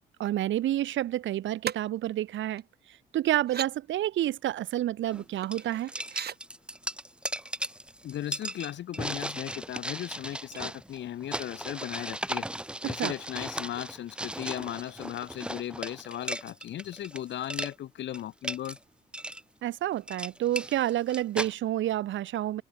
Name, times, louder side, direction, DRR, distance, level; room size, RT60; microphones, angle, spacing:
voice 1, 0.2-2.6 3.1-5.9 13.0-13.1 19.6-22.6, right 13 dB, 70° right, 1.0 m, -29 dB
sound 1, 1.6-1.8 2.6-2.7 3.3-3.7 5.4-6.4 8.1-8.3 8.6-9.1 10.1-11.1 11.4-11.5, right 8 dB, 55° right, 2.8 m, -38 dB
sound 2, 5.1-5.2 5.5-17.2 17.4-17.7 18.1-18.8 19.1-19.4 19.9-21.5, right 1 dB, 5° right, 1.6 m, -36 dB
voice 2, 8.0-12.5 12.8-18.8, left 12 dB, 65° left, 0.9 m, -37 dB
cardioid pair, 90°, 20 cm